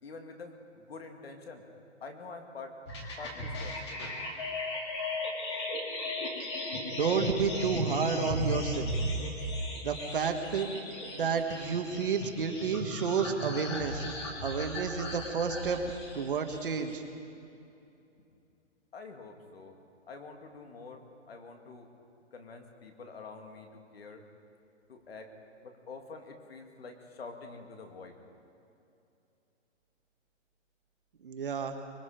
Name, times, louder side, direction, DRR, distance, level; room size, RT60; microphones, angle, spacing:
voice 1, 0.0-1.6 2.0-2.8 3.2-4.0 18.9-19.8 20.1-21.9 22.3-24.2 24.9-25.3 25.6-28.2, left 4 dB, 55° left, 4 dB, 2.4 m, -46 dB
sound 1, 2.9-16.9, left 1 dB, 20° left, 1.9 m, -36 dB
voice 2, 6.8-8.9 9.8-10.7 11.1-14.0 14.4-17.0 31.2-31.7, right 6 dB, 45° right, 5 dB, 1.6 m, -31 dB
24.0 x 21.5 x 5.1 m, 2.7 s
hypercardioid pair, 180°, 36 cm